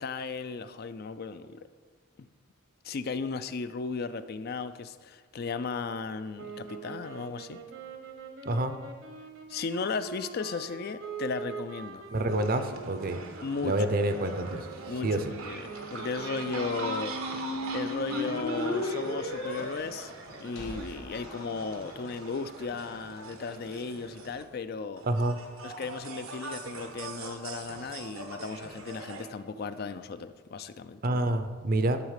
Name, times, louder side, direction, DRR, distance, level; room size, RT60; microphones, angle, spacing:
voice 1, 0.0-1.6 2.2-2.3 2.8-7.6 9.5-12.1 13.4-13.9 14.9-25.0 25.6-31.2, left 4 dB, 50° left, 11 dB, 0.4 m, -36 dB
sound 1, 6.3-16.8, right 4 dB, 70° right, 1.1 m, -44 dB
voice 2, 12.1-13.2 13.6-14.6 15.0-15.3 25.0-25.4 31.0-32.0, right 1 dB, 45° right, 9 dB, 0.6 m, -27 dB
sound 2, 12.3-24.4 25.0-29.3, right 3 dB, 90° right, 1.2 m, -42 dB
sound 3, 16.3-22.2, left 1 dB, 75° left, 1.9 m, -36 dB
11.0 x 4.0 x 6.6 m, 1.5 s
head